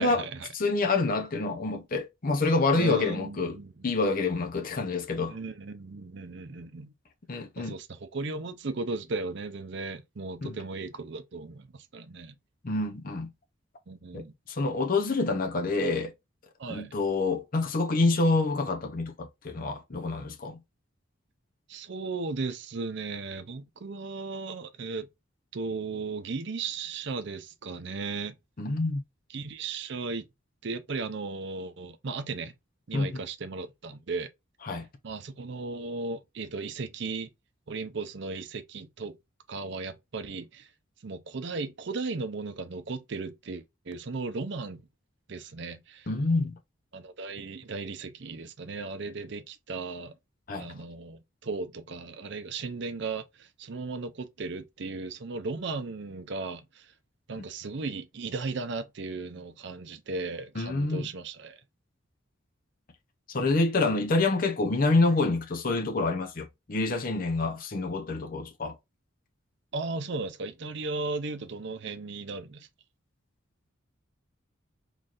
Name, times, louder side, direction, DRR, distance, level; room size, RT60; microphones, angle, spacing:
voice 1, 0.0-0.5 2.7-3.9 5.3-6.9 7.6-11.7 11.9-12.3 13.9-14.3 16.6-17.0 21.7-25.1 25.5-28.3 29.3-30.2 30.6-32.5 32.9-34.3 35.0-37.3 37.7-39.2 39.5-40.7 41.0-44.8 45.3-46.1 46.9-50.1 50.6-56.9 57.3-61.6 69.7-72.7, right 3 dB, 60° right, 0.6 m, -36 dB
voice 2, 0.5-3.6 3.8-5.4 7.3-7.8 10.4-10.6 12.6-13.3 14.1-14.2 14.5-16.1 16.7-20.6 28.6-29.0 32.9-33.2 34.6-34.9 46.1-46.6 50.5-50.7 60.5-61.1 63.3-68.7, left 3 dB, 45° left, 0.6 m, -27 dB
3.9 x 3.1 x 2.5 m
head